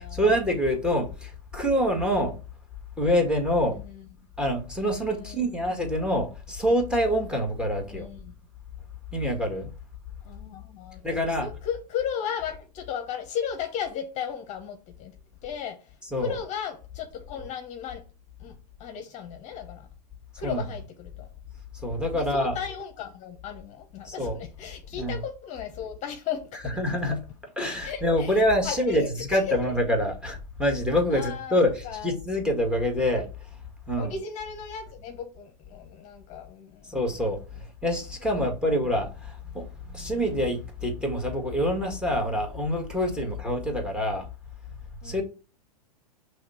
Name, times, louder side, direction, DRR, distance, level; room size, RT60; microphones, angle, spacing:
voice 1, 0.0-2.4 3.0-3.8 4.4-8.1 9.1-9.7 11.0-11.5 16.0-16.4 20.4-20.7 21.8-22.6 24.0-24.4 24.9-25.2 26.5-27.2 27.6-33.3 33.9-34.2 36.9-37.4 37.8-44.3 45.0-45.2, equal, 5° right, 1.6 m, -26 dB
voice 2, 3.7-4.1 5.1-5.6 7.9-8.4 10.2-11.0 11.4-15.1 15.4-18.1 18.4-19.9 20.4-21.3 22.1-26.8 27.8-29.6 31.1-31.6 31.8-32.1 34.0-37.0 38.2-38.7 45.0-45.2, left 8 dB, 35° left, 1.0 m, -35 dB
5.8 x 3.3 x 5.5 m
hypercardioid pair, 120°, 21 cm